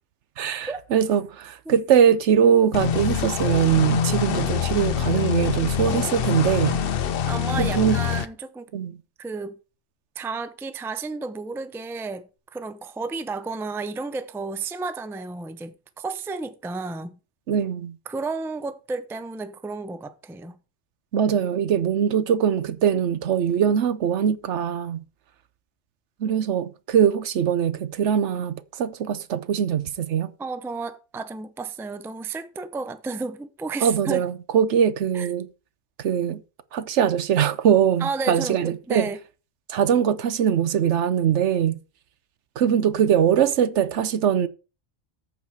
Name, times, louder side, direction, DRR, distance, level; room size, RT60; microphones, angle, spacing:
voice 1, 0.4-6.8 7.6-8.0 8.7-8.9 17.5-18.0 21.1-25.0 26.2-30.3 33.8-35.5 36.0-36.4 36.7-39.1 39.7-41.8 42.6-44.5, right 8 dB, 70° right, 1.0 m, -22 dB
sound 1, 2.7-8.3, left 8 dB, 60° left, 0.7 m, -25 dB
voice 2, 7.3-8.7 9.2-9.6 10.2-17.2 18.1-20.6 30.4-34.3 35.1-35.3 38.0-39.2, right 4 dB, 5° right, 0.4 m, -32 dB
14.0 x 4.8 x 4.7 m
omnidirectional pair, 1.3 m